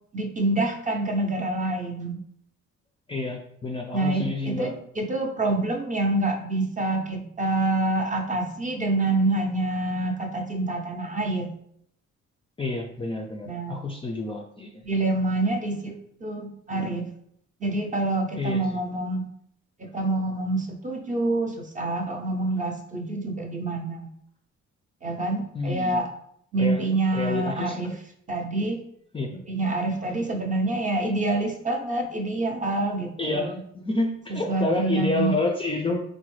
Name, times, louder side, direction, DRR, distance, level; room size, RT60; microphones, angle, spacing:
voice 1, 0.1-2.2 3.9-11.5 13.4-13.8 14.8-17.1 17.6-19.3 19.8-24.1 25.0-26.1 26.5-27.9 28.3-28.8 29.5-33.6 34.3-35.4, right 2 dB, 25° right, 2 dB, 0.6 m, -27 dB
voice 2, 3.1-4.7 12.6-14.8 18.4-18.8 25.5-26.0 26.6-27.8 29.1-29.4 33.2-36.0, left 2 dB, 20° left, 1 dB, 0.3 m, -29 dB
3.7 x 2.0 x 3.1 m, 0.69 s
cardioid pair, 90°, 30 cm